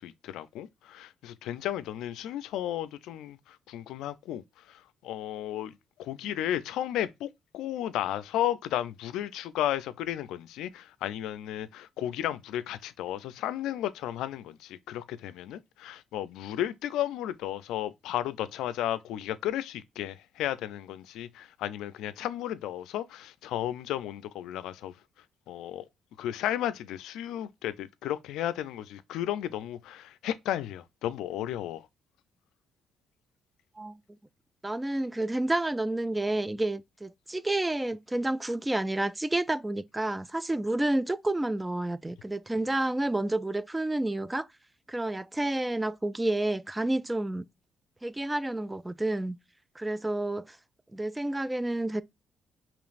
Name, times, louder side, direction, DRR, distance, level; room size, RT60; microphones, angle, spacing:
voice 1, 0.0-24.9 25.5-25.9 26.2-31.9, left 12 dB, 90° left, 0.4 m, -34 dB
voice 2, 34.6-44.5 44.9-47.5 48.0-49.4 49.8-50.6 50.9-52.0, right 1 dB, 15° right, 0.3 m, -30 dB
5.0 x 3.0 x 2.4 m
cardioid pair, 90°, 0 cm